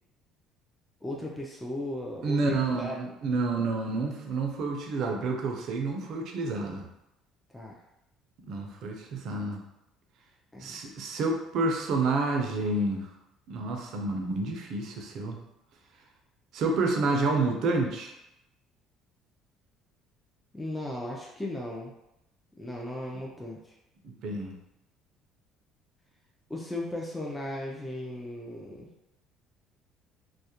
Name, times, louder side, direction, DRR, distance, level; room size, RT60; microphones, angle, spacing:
voice 1, 1.0-3.0 7.5-7.8 10.5-10.8 20.5-21.9 22.6-23.7 26.5-28.9, left 1 dB, 10° left, -2 dB, 0.4 m, -36 dB
voice 2, 2.2-6.8 8.5-9.6 10.6-13.1 13.5-15.4 16.5-18.1 24.0-24.6, right 3 dB, 65° right, 2 dB, 0.4 m, -29 dB
2.3 x 2.0 x 2.8 m, 0.86 s
supercardioid pair, 95°, 0 cm